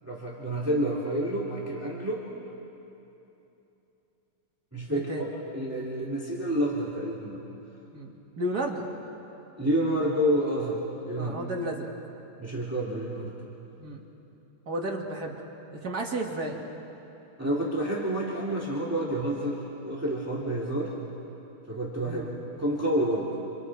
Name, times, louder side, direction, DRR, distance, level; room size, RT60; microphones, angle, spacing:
voice 1, 0.0-2.3 4.7-7.5 9.6-11.3 12.4-13.3 17.4-20.9 21.7-22.2 22.6-23.3, right 1 dB, 10° right, -5 dB, 2.5 m, -29 dB
voice 2, 4.9-5.3 7.9-8.9 11.2-11.9 13.8-14.0 14.7-15.4 15.7-16.7 22.1-22.3, right 1 dB, 55° right, -1 dB, 2.8 m, -33 dB
29.5 x 26.5 x 4.7 m, 3.0 s
omnidirectional pair, 2.0 m